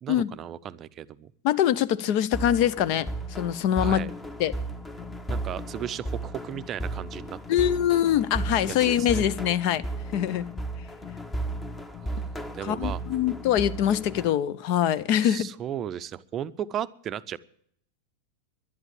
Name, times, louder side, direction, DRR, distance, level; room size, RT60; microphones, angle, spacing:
voice 1, 0.0-1.3 3.8-4.1 5.3-7.7 8.7-9.3 12.0-13.0 15.2-17.4, right 10 dB, 30° right, 0.6 m, -35 dB
voice 2, 1.4-3.1 3.4-4.0 4.4-4.5 7.5-9.8 10.1-10.4 12.6-15.5, left 11 dB, 45° left, 0.7 m, -23 dB
sound 1, 2.3-14.3, right 1 dB, 10° left, 1.0 m, -35 dB
11.0 x 11.0 x 8.5 m
figure-of-eight pair, 90°, 0 cm